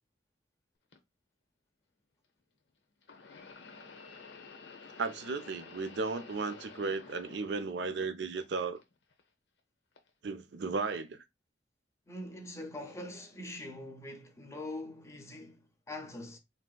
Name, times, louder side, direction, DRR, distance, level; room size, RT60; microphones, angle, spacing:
sound 1, 0.9-1.0 3.0-8.1 8.4-9.2 10.0-10.1 11.1-11.2, left 4 dB, 85° left, 0.7 m, -51 dB
voice 1, 5.0-8.8 10.2-11.2, right 4 dB, 75° right, 0.5 m, -35 dB
voice 2, 12.1-16.4, left 1 dB, 15° left, 0.5 m, -43 dB
3.4 x 2.6 x 2.2 m
head